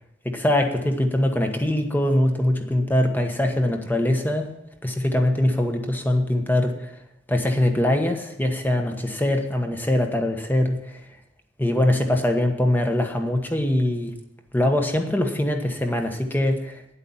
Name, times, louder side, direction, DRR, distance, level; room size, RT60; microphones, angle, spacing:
voice 1, 0.2-4.5 4.8-6.9 7.3-11.0 11.6-14.1 14.5-16.8, left 1 dB, 10° left, 4 dB, 1.2 m, -22 dB
9.9 x 8.4 x 7.2 m, 0.82 s
head